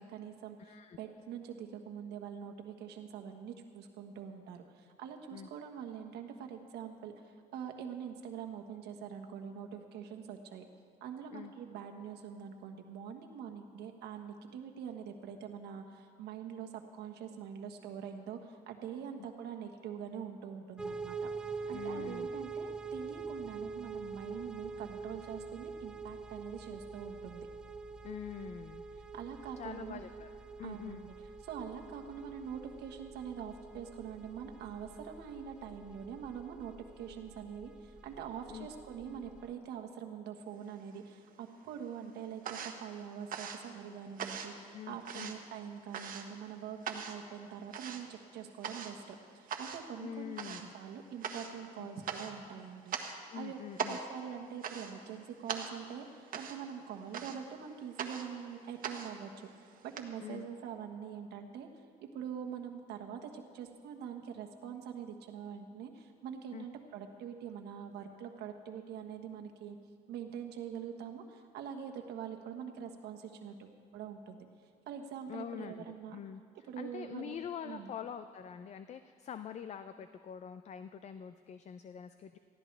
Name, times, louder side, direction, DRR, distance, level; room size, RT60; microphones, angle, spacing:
voice 1, 0.0-10.6 11.0-27.5 29.1-30.0 30.6-31.1 31.4-53.0 53.3-53.6 53.9-59.3 59.8-61.8 62.1-69.8 70.1-74.5 74.9-76.2 76.7-77.4 77.6-77.9, right 8 dB, 75° right, 4 dB, 1.3 m, -44 dB
voice 2, 0.6-1.0 5.3-5.5 11.3-11.5 19.2-19.3 21.7-22.3 28.0-28.8 29.6-30.3 30.6-31.1 38.5-38.7 44.7-45.3 50.0-50.7 51.8-51.9 53.3-54.0 60.2-60.5 66.5-66.6 75.3-76.4 76.8-82.4, left 8 dB, 45° left, 11 dB, 0.5 m, -45 dB
sound 1, 20.8-39.5, right 4 dB, 5° right, 0.6 m, -45 dB
sound 2, 40.7-41.5 41.7-60.0, right 6 dB, 55° right, 1.3 m, -42 dB
19.5 x 14.5 x 3.3 m, 2.1 s
cardioid pair, 110°, 17 cm